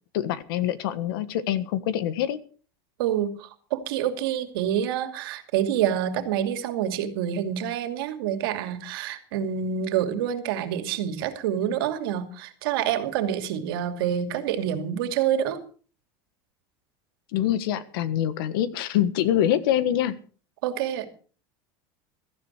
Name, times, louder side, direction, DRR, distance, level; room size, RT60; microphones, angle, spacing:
voice 1, 0.1-2.4 17.3-20.2, left 11 dB, 75° left, 14 dB, 1.6 m, -25 dB
voice 2, 3.0-15.6 20.6-21.1, right 9 dB, 80° right, 8 dB, 2.6 m, -27 dB
16.5 x 14.0 x 4.5 m, 0.41 s
cardioid pair, 175°, 12 cm